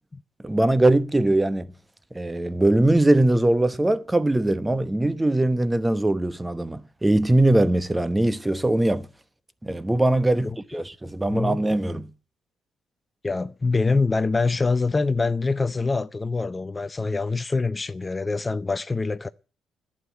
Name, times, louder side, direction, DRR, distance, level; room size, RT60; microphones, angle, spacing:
voice 1, 0.4-1.7 2.1-9.1 9.6-12.1, right 1 dB, 15° right, 1.0 m, -21 dB
voice 2, 10.4-10.8 11.3-11.6 13.2-19.3, left 3 dB, 25° left, 0.6 m, -25 dB
11.5 x 8.8 x 8.9 m
hypercardioid pair, 50°, 0 cm